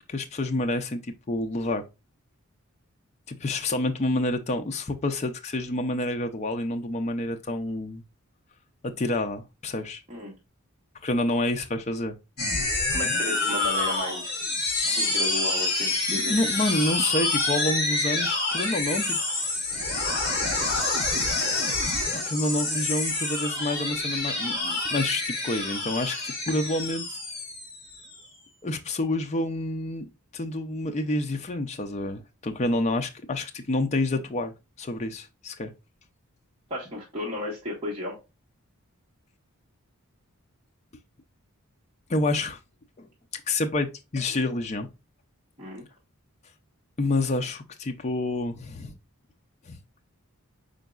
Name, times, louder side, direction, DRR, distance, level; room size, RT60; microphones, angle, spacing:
voice 1, 0.1-1.8 3.3-8.0 8.8-10.0 11.0-12.2 16.1-19.2 20.7-20.9 22.1-27.2 28.6-30.0 30.3-35.7 42.1-42.6 43.0-43.1 43.5-44.9 47.0-48.9 49.7-49.8, left 2 dB, 30° left, 0.4 m, -28 dB
sound 1, 12.4-28.2, left 2 dB, 50° left, 3.0 m, -27 dB
voice 2, 12.9-14.4 14.8-16.3 36.7-38.2 45.6-45.8, left 1 dB, 25° right, 1.1 m, -34 dB
5.1 x 4.4 x 2.3 m
head